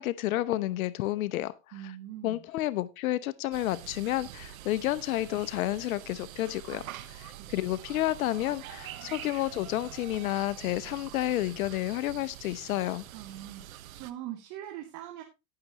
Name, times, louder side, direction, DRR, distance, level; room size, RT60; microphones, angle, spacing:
voice 1, 0.0-1.5 1.8-1.9 2.2-13.0, left 15 dB, 90° left, 0.8 m, -30 dB
voice 2, 1.7-2.4 7.3-7.5 13.1-13.7 14.0-15.2, right 12 dB, 55° right, 2.5 m, -42 dB
sound 1, 3.5-14.1, right 13 dB, 90° right, 1.1 m, -45 dB
18.0 x 6.7 x 2.9 m
supercardioid pair, 110°, 41 cm